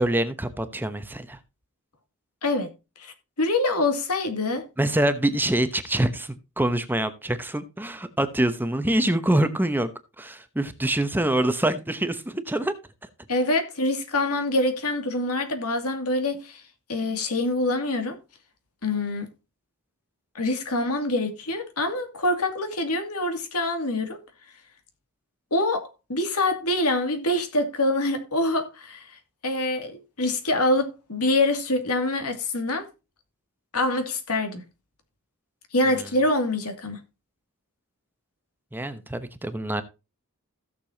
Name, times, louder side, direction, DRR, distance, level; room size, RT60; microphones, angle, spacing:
voice 1, 0.0-1.4 4.8-9.9 10.2-12.7 35.9-36.1 38.7-39.8, right 1 dB, 10° right, 0.9 m, -25 dB
voice 2, 2.4-2.7 3.0-4.7 13.3-16.6 16.9-18.2 18.8-19.3 20.3-24.2 25.5-29.2 29.4-32.9 33.7-34.6 35.7-37.0, left 2 dB, 80° left, 2.4 m, -25 dB
16.5 x 6.9 x 2.8 m
head